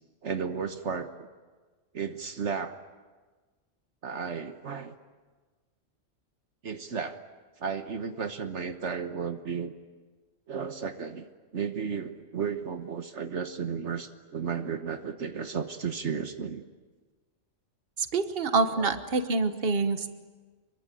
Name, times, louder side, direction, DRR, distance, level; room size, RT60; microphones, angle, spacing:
voice 1, 0.2-1.3 1.9-2.8 4.0-4.9 6.6-7.2 7.6-9.7 10.5-11.3 11.5-16.6 18.7-18.9, right 6 dB, 70° right, 7 dB, 1.5 m, -33 dB
voice 2, 18.0-20.1, right 3 dB, 50° right, 9 dB, 1.5 m, -26 dB
26.0 x 23.5 x 9.2 m, 1.3 s
omnidirectional pair, 1.2 m